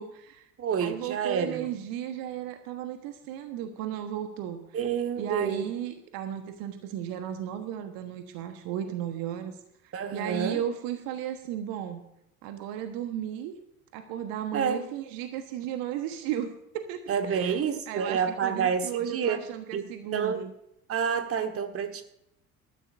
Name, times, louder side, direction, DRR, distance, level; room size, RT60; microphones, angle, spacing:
voice 1, 0.0-0.5 0.8-4.6 5.2-9.6 9.8-12.0 12.4-13.6 13.9-17.6 17.9-20.5, right 10 dB, 50° right, 7 dB, 1.3 m, -35 dB
voice 2, 0.6-1.7 4.7-5.7 9.9-10.6 14.5-14.9 17.1-19.4 19.7-19.8 20.1-20.5 20.9-22.0, right 7 dB, 30° right, 7 dB, 1.5 m, -28 dB
20.0 x 13.0 x 2.6 m, 0.80 s
figure-of-eight pair, 65°, 44 cm